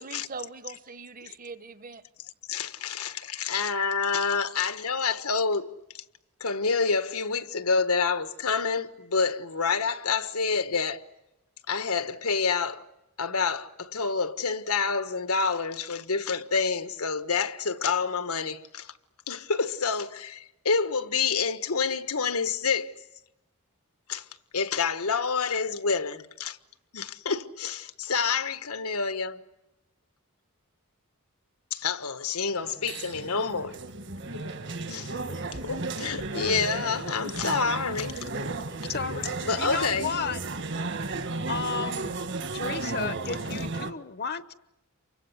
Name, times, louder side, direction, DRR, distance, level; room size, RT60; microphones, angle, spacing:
voice 1, 0.0-2.0, right 4 dB, 40° right, 1.1 m, -41 dB
voice 2, 2.5-5.7 5.9-6.0 6.4-11.0 11.7-12.8 13.2-18.9 19.3-22.9 24.1-24.3 24.5-26.6 26.9-29.4 31.7-33.8 34.9-38.2 38.8-38.9 39.4-40.1, left 5 dB, 80° left, 1.5 m, -28 dB
sound 1, 32.6-43.9, right 3 dB, 55° right, 1.6 m, -34 dB
voice 3, 38.9-39.3 39.6-40.4 41.5-42.2 42.5-44.5, left 5 dB, 45° left, 0.9 m, -33 dB
29.0 x 24.5 x 8.1 m
head